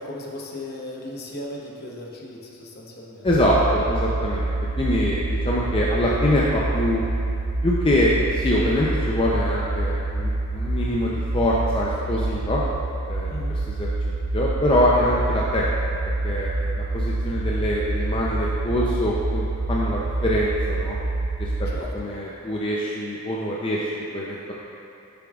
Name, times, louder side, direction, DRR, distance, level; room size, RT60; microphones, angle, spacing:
voice 1, 0.0-3.3 13.3-13.6 21.6-21.9, left 1 dB, 50° left, -2 dB, 0.9 m, -36 dB
voice 2, 3.2-4.5 4.8-7.0 7.6-12.6 13.1-13.4 13.7-13.9 14.3-15.6 16.2-21.0 21.4-21.5 21.9-24.5, left 1 dB, 25° left, -5 dB, 0.5 m, -24 dB
sound 1, 3.3-21.8, right 2 dB, 65° right, 0.6 m, -26 dB
9.5 x 6.9 x 2.4 m, 2.7 s
head